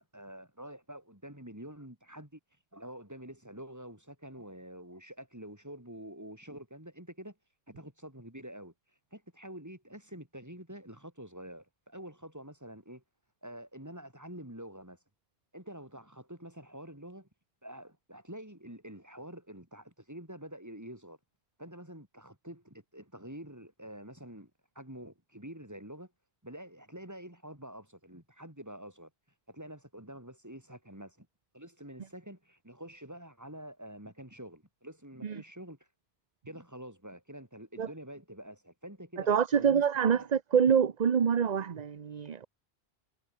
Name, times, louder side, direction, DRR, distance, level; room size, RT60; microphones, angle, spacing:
voice 1, 0.0-2.4 2.7-7.4 7.7-8.7 9.1-13.0 13.4-15.0 15.5-17.3 17.6-21.2 21.6-26.1 26.4-29.1 29.5-31.3 31.5-35.8 36.5-39.8 40.1-40.3, right 1 dB, 15° right, 4.7 m, -47 dB
voice 2, 39.3-42.5, right 7 dB, 45° right, 0.8 m, -26 dB
omnidirectional pair, 1.1 m